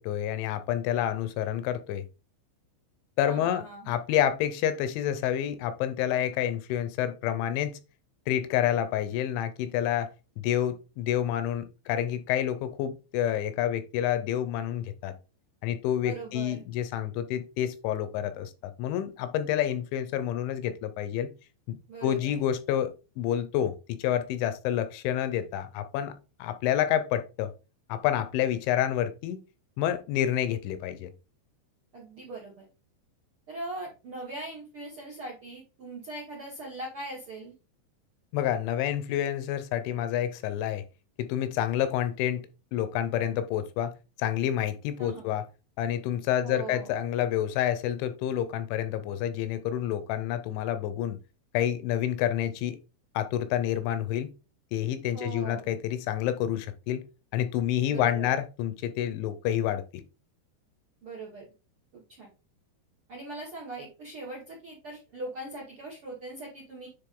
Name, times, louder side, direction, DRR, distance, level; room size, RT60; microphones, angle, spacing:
voice 1, 0.0-2.0 3.2-7.8 8.3-10.1 10.4-15.1 15.6-18.5 18.8-21.3 21.7-26.1 26.4-27.5 27.9-29.4 29.8-31.1 38.3-40.8 41.2-43.9 44.2-45.5 45.8-51.2 51.5-52.8 53.1-54.3 54.7-57.0 57.3-60.0, left 11 dB, 80° left, 2.9 m, -28 dB
voice 2, 3.2-3.9 16.0-16.6 21.9-22.4 31.9-32.7 33.5-37.5 45.0-45.3 46.4-46.9 55.1-55.6 57.8-58.4 61.0-61.5 61.9-62.3 63.1-66.9, right 2 dB, 60° right, 1.4 m, -40 dB
9.9 x 3.7 x 3.7 m
omnidirectional pair, 5.5 m